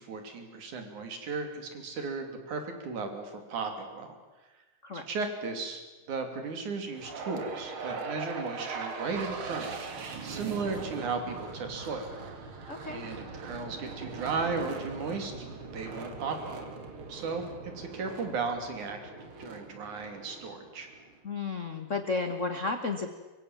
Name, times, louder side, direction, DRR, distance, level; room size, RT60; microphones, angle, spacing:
voice 1, 0.0-4.2 4.9-5.8 6.1-12.1 12.9-15.5 15.7-16.6 17.1-19.0 19.4-20.9, right 4 dB, 65° right, 5 dB, 4.3 m, -35 dB
sound 1, 6.9-21.1, right 4 dB, 45° right, 2.7 m, -41 dB
voice 2, 12.7-13.0 21.2-23.2, left 4 dB, 65° left, 7 dB, 0.7 m, -33 dB
24.0 x 23.5 x 7.4 m, 1.2 s
omnidirectional pair, 3.8 m